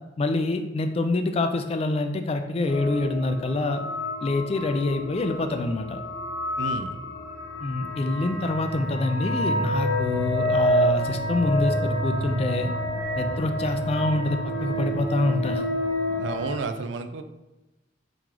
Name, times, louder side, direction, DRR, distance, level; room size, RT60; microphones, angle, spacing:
voice 1, 0.2-3.8 4.2-6.0 7.6-12.7 13.2-15.6, left 2 dB, 35° left, 7 dB, 0.3 m, -26 dB
sound 1, 2.7-16.6, equal, 65° left, 0.7 m, -28 dB
voice 2, 6.6-7.0 16.2-17.2, right 4 dB, 80° right, 7 dB, 0.4 m, -32 dB
4.7 x 3.0 x 3.7 m, 1.0 s
head